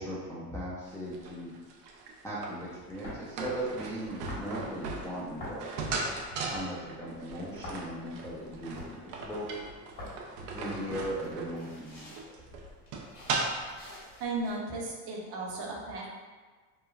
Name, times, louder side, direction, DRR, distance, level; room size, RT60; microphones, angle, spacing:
voice 1, 0.0-1.5 2.2-5.7 6.5-9.5 10.5-12.1, right 1 dB, 5° left, -8 dB, 0.3 m, -38 dB
sound 1, 0.9-13.8, right 3 dB, 85° right, 0.6 m, -38 dB
sound 2, 3.0-14.6, left 1 dB, 55° left, 1.5 m, -48 dB
voice 2, 14.2-16.1, right 2 dB, 55° right, -2 dB, 0.8 m, -35 dB
3.1 x 2.2 x 2.3 m, 1.4 s
supercardioid pair, 90°, 47 cm